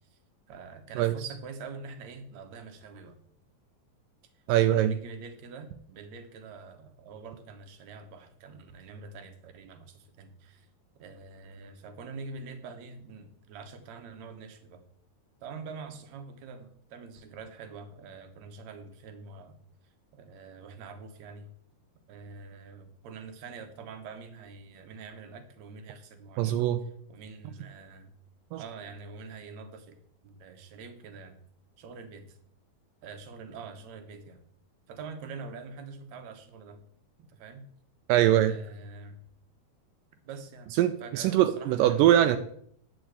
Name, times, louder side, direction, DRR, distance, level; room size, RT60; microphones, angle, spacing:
voice 1, 0.5-3.2 4.7-10.7 11.0-14.8 15.4-19.6 20.1-21.5 22.1-26.7 27.1-28.1 28.6-30.0 30.2-31.4 31.8-32.4 33.0-34.4 34.9-36.8 37.2-37.7 38.4-39.2 40.3-42.1, right 4 dB, 65° right, 7 dB, 1.9 m, -45 dB
voice 2, 4.5-5.0 26.4-26.8 28.5-28.6 38.1-38.6 40.8-42.4, right 12 dB, 85° right, 9 dB, 1.9 m, -22 dB
10.0 x 5.0 x 8.2 m, 0.63 s
omnidirectional pair, 4.5 m